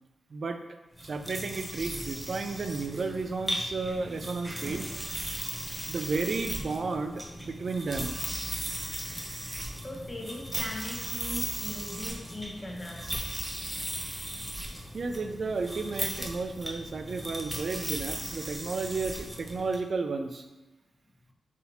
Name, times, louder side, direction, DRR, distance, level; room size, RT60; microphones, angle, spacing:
voice 1, 0.3-0.6 1.0-4.9 5.9-8.1 14.9-20.5, right 4 dB, 55° right, 6 dB, 0.4 m, -33 dB
sound 1, 0.9-19.8, equal, 10° right, 0.6 m, -37 dB
voice 2, 9.8-13.1, left 1 dB, 25° left, -2 dB, 0.9 m, -39 dB
4.1 x 2.7 x 4.1 m, 1.1 s
cardioid pair, 75°, 0 cm